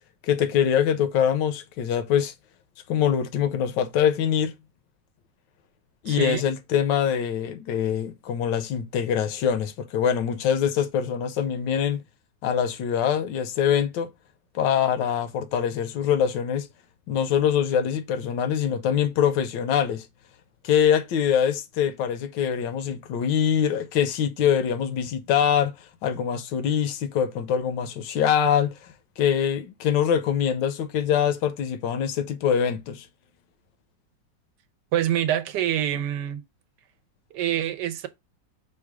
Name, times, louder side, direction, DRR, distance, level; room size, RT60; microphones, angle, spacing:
voice 1, 0.2-2.3 2.9-4.5 6.0-12.0 12.4-14.1 14.5-16.7 17.1-20.1 20.6-25.7 26.0-28.8 29.2-33.1, left 8 dB, 80° left, 1.3 m, -24 dB
voice 2, 6.1-6.4 34.9-36.4 37.3-38.1, right 11 dB, 75° right, 1.2 m, -26 dB
4.8 x 2.3 x 4.7 m
omnidirectional pair, 2.0 m